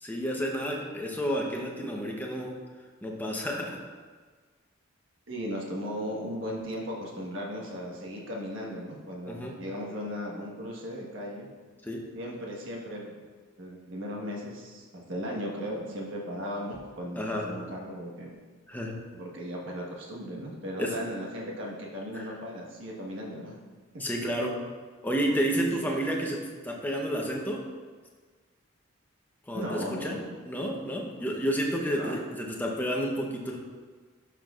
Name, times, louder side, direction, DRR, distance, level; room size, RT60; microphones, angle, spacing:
voice 1, 0.0-2.5 3.0-3.8 9.2-9.6 11.8-12.0 17.2-17.6 18.7-19.0 20.8-20.9 22.1-22.4 24.0-24.5 25.0-27.6 29.5-33.6, equal, 10° left, 0 dB, 0.8 m, -31 dB
voice 2, 5.3-11.5 12.1-13.2 13.6-18.3 19.1-23.6 23.9-24.0 25.5-25.9 29.5-30.3 31.9-32.2, equal, 60° right, -2 dB, 1.4 m, -37 dB
12.0 x 5.9 x 2.4 m, 1.5 s
head